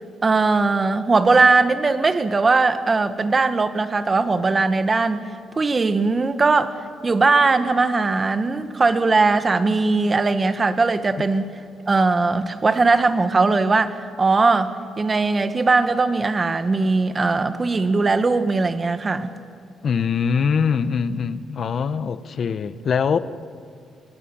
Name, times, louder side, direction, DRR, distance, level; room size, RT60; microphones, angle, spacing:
voice 1, 0.2-5.2 5.6-11.5 11.9-19.3, right 3 dB, 30° right, 1.6 m, -19 dB
voice 2, 19.8-23.2, left 6 dB, 50° left, 1.1 m, -23 dB
25.5 x 20.5 x 7.3 m
cardioid pair, 90°, 0 cm